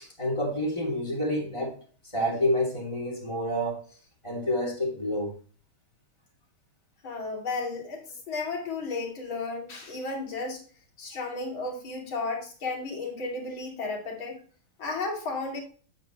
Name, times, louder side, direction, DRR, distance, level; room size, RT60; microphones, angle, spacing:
voice 1, 0.0-1.8 2.1-3.8 4.2-5.3, left 1 dB, 15° left, 2.8 m, -28 dB
voice 2, 7.0-10.6 11.0-14.4 14.8-15.6, left 3 dB, 65° left, 2.9 m, -33 dB
8.3 x 7.5 x 3.0 m
omnidirectional pair, 2.4 m